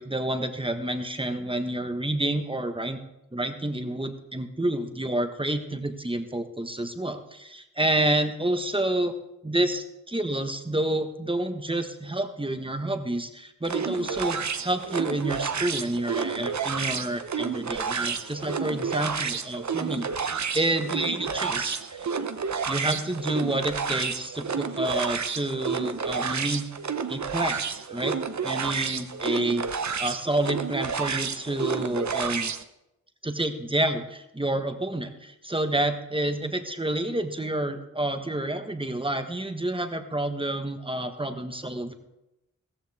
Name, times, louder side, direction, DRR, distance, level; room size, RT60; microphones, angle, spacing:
voice 1, 0.0-3.0 3.3-9.1 9.4-22.2 22.7-26.7 27.1-27.6 27.9-28.2 28.4-29.7 30.0-32.5 33.2-41.9, right 1 dB, 15° right, 7 dB, 1.4 m, -29 dB
sound 1, 13.6-32.6, right 6 dB, 65° right, 0.9 m, -30 dB
16.0 x 14.5 x 3.6 m, 0.90 s
wide cardioid pair, 60°, 30 cm